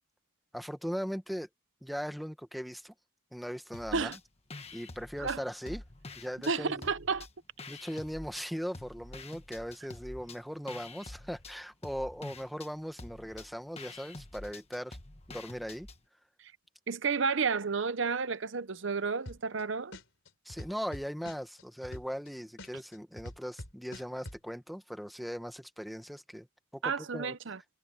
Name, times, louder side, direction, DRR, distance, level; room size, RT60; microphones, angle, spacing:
voice 1, 0.5-1.5 1.8-2.9 3.3-4.2 4.7-5.8 6.2-6.9 7.7-15.0 15.3-15.9 20.4-26.5 26.7-27.3, equal, ahead, 1.2 m, -39 dB
sound 1, 3.7-4.2 4.5-6.5 6.8-8.4 8.7-16.0, left 2 dB, 30° left, 1.4 m, -47 dB
voice 2, 6.5-7.3 16.9-20.0 26.8-27.6, right 5 dB, 65° right, 0.7 m, -31 dB
sound 2, 19.3-19.6 19.9-22.3 22.6-24.4, left 1 dB, 65° left, 3.7 m, -44 dB
head